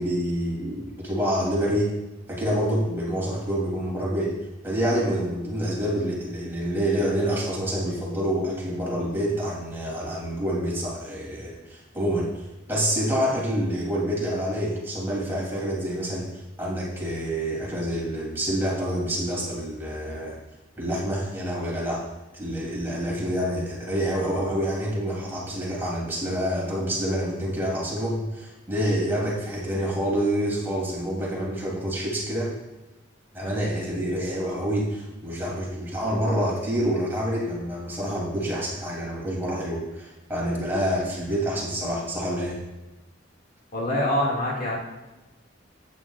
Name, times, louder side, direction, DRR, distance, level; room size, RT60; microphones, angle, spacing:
voice 1, 0.0-1.9 2.3-4.3 4.6-12.3 12.7-20.4 20.8-22.0 22.3-32.6 33.3-42.6, equal, 10° right, -5 dB, 3.0 m, -27 dB
voice 2, 43.7-44.8, left 1 dB, 45° left, -3 dB, 2.1 m, -24 dB
12.5 x 9.2 x 2.4 m, 1.0 s
head